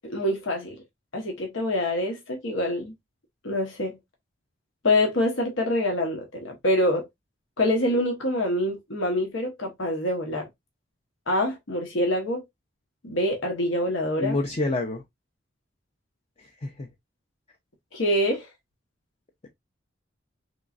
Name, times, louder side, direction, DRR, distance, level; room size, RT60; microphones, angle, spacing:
voice 1, 0.0-0.8 1.1-2.9 3.4-4.0 4.8-7.1 7.6-10.5 11.3-12.4 13.0-14.4 17.9-18.5, left 1 dB, 80° left, 1.0 m, -25 dB
voice 2, 14.2-15.0 16.4-16.9, left 2 dB, 35° left, 0.6 m, -28 dB
3.7 x 3.0 x 2.4 m
head